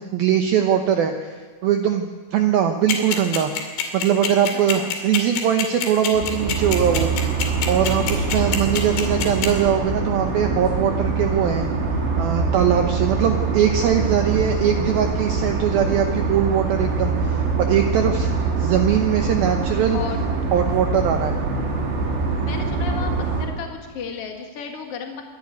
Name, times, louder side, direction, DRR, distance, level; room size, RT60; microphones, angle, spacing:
voice 1, 0.0-3.5 3.9-11.7 12.2-18.3 18.6-20.0 20.5-21.3, right 9 dB, 80° right, 6 dB, 2.1 m, -21 dB
sound 1, 2.9-9.5, left 9 dB, 85° left, 5.0 m, -24 dB
voice 2, 4.5-5.0 7.9-8.2 18.3-18.5 19.9-20.2 22.4-23.1 23.4-25.2, left 6 dB, 65° left, 3 dB, 1.4 m, -34 dB
sound 2, 6.1-23.5, right 4 dB, 60° right, 5.1 m, -24 dB
25.0 x 11.5 x 9.6 m, 1.5 s
omnidirectional pair, 5.6 m